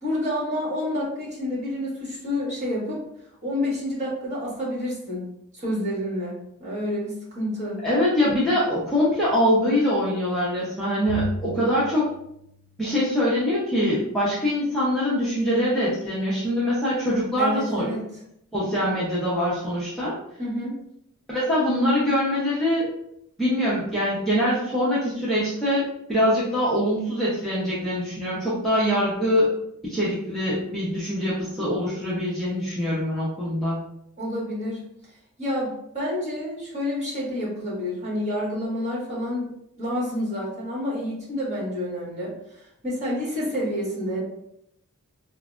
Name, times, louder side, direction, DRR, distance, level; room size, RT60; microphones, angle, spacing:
voice 1, 0.0-3.0 3.4-5.3 5.5-7.8 17.4-18.1 20.4-20.7 34.2-34.8 35.4-39.5 39.8-42.3 42.8-44.2, left 1 dB, 30° right, -6 dB, 1.4 m, -28 dB
voice 2, 7.8-12.1 12.8-17.9 18.5-20.1 21.3-22.9 23.4-29.5 29.8-33.8, equal, ahead, -10 dB, 0.7 m, -23 dB
Bowed string instrument, 11.1-13.5, left 2 dB, 80° left, 0.6 m, -37 dB
4.7 x 2.1 x 2.4 m, 0.76 s
head